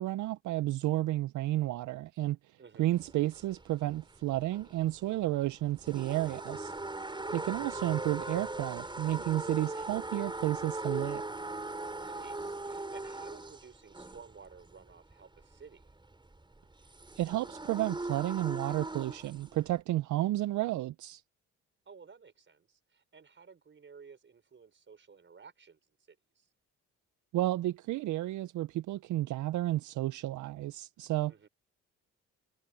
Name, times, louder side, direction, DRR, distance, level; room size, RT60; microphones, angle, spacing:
voice 1, 0.0-6.7 7.3-11.2 17.2-21.2 27.3-31.3, right 15 dB, 75° right, 0.6 m, -32 dB
voice 2, 2.6-3.0 7.0-7.5 11.9-15.8 21.9-25.8 26.1-26.5 31.3-31.5, right 5 dB, 40° right, 5.9 m, -54 dB
sound 1, 2.9-19.8, right 2 dB, 15° right, 6.2 m, -40 dB
cardioid pair, 90°, 30 cm